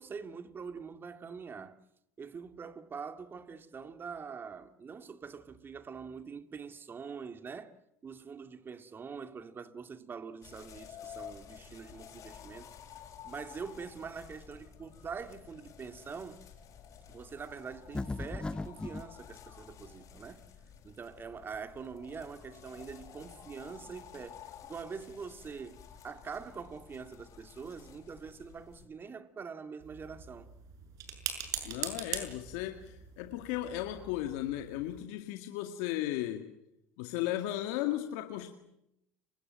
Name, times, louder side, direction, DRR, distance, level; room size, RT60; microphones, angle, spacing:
voice 1, 0.0-1.8 2.2-7.8 8.0-12.7 13.2-16.5 17.1-20.4 20.8-25.8 26.0-30.5, right 5 dB, 30° right, 2.3 m, -44 dB
sound 1, 10.4-28.9, left 8 dB, 50° left, 7.4 m, -52 dB
sound 2, 17.9-19.1, left 3 dB, 15° left, 0.9 m, -36 dB
sound 3, 29.8-35.0, right 8 dB, 60° right, 6.6 m, -42 dB
voice 2, 31.6-36.5 37.0-38.5, left 14 dB, 75° left, 2.0 m, -35 dB
30.0 x 24.0 x 7.7 m
hypercardioid pair, 85°, 7 cm